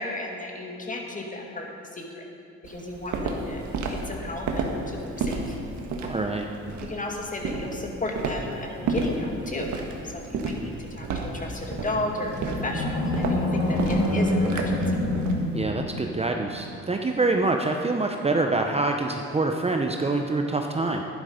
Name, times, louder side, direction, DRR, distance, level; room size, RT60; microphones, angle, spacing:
voice 1, 0.0-2.3 2.6-3.6 3.9-5.6 6.8-9.7 10.0-14.8, left 2 dB, 25° left, 1 dB, 2.1 m, -34 dB
Walk footsteps, 2.6-15.4, right 3 dB, 75° right, 1.5 m, -31 dB
voice 2, 6.1-6.5 15.5-21.0, right 3 dB, 20° right, 3 dB, 0.7 m, -25 dB
Animal, 11.8-16.3, left 1 dB, 55° left, 3.3 m, -26 dB
11.5 x 11.0 x 5.1 m, 2.5 s
cardioid pair, 90°, 30 cm